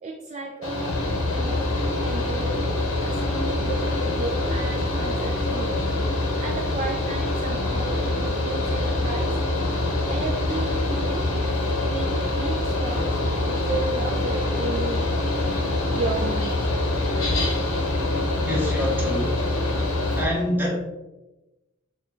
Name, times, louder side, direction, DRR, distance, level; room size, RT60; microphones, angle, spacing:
voice 1, 0.0-2.6 3.0-9.4 10.1-11.3 11.8-15.1 16.0-16.8, right 2 dB, 35° right, 0 dB, 0.3 m, -34 dB
Mechanical fan, 0.6-20.2, left 2 dB, 80° left, 0.8 m, -25 dB
voice 2, 18.4-19.4 20.2-20.8, left 1 dB, 10° right, -4 dB, 0.9 m, -26 dB
6.0 x 2.3 x 2.4 m, 1.0 s
head